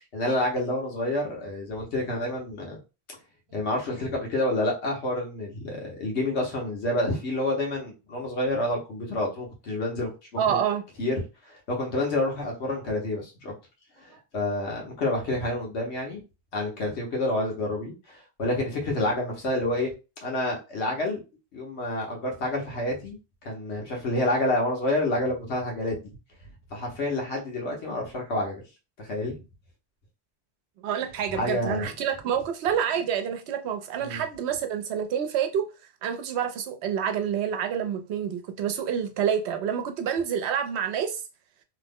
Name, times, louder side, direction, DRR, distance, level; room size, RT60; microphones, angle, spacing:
voice 1, 0.1-2.8 3.5-10.1 10.5-10.6 11.0-11.1 11.5-13.5 14.0-16.2 16.5-19.9 20.2-21.2 21.5-26.0 26.7-28.6 29.0-29.4 31.3-31.9 34.0-34.2, left 1 dB, 85° left, 1.3 m, -28 dB
voice 2, 10.4-10.8 30.8-35.7 36.0-41.2, right 8 dB, 80° right, 0.8 m, -28 dB
3.0 x 2.0 x 3.5 m
omnidirectional pair, 1.1 m